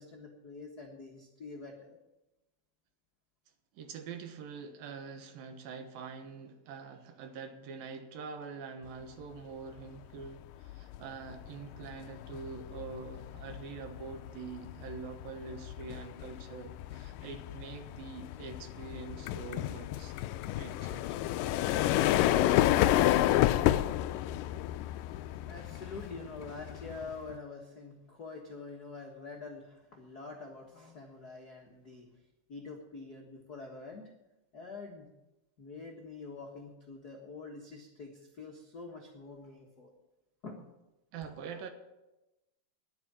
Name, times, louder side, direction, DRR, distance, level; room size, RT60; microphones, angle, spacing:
voice 1, 0.0-2.0 24.9-32.1 32.5-34.1 34.5-35.1 35.6-39.9 40.4-40.6, left 3 dB, 65° left, 0 dB, 0.9 m, -46 dB
voice 2, 3.7-20.2 20.5-21.2 41.1-41.7, right 5 dB, 70° right, 7 dB, 2.7 m, -45 dB
sound 1, 10.0-10.3 10.6-27.4, left 14 dB, 85° left, 1.9 m, -31 dB
11.0 x 9.4 x 8.7 m, 0.98 s
omnidirectional pair, 4.4 m